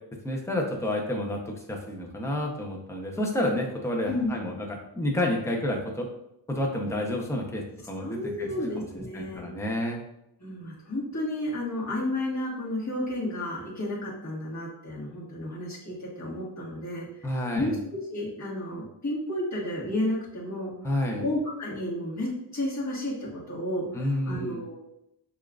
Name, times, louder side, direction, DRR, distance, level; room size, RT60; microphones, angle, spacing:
voice 1, 0.2-6.1 6.5-8.7 9.1-10.0 17.2-17.8 20.8-21.3 23.9-24.6, left 1 dB, 5° left, 0 dB, 0.6 m, -30 dB
voice 2, 8.0-9.5 10.4-17.0 17.5-20.7 21.2-24.8, left 1 dB, 40° left, -6 dB, 1.6 m, -32 dB
6.7 x 2.5 x 2.3 m, 0.82 s
wide cardioid pair, 125°, 44 cm